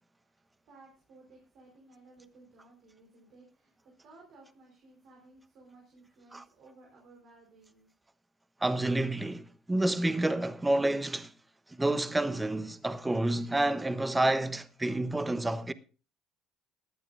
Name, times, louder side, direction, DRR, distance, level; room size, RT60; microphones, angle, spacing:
voice 1, 0.2-3.7 4.0-7.9, right 3 dB, 60° right, 4.6 m, -57 dB
voice 2, 8.6-11.3 11.7-15.7, right 1 dB, 15° right, 1.0 m, -29 dB
18.5 x 11.0 x 2.6 m
hypercardioid pair, 65°, 0 cm